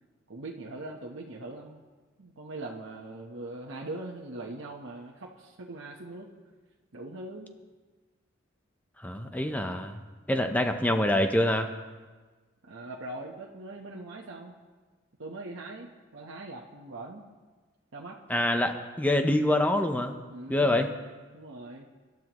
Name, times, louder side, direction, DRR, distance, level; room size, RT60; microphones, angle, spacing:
voice 1, 0.3-1.8 2.2-6.3 6.9-7.5 9.2-9.3 12.6-14.6 15.2-15.9 16.1-17.3 17.9-18.2 20.3-20.8 21.3-21.9, right 2 dB, 85° right, -3 dB, 1.1 m, -41 dB
voice 2, 9.0-10.0 10.3-11.7 18.3-20.2 20.5-20.9, left 1 dB, 10° left, 5 dB, 0.7 m, -25 dB
25.5 x 12.0 x 3.0 m, 1.3 s
head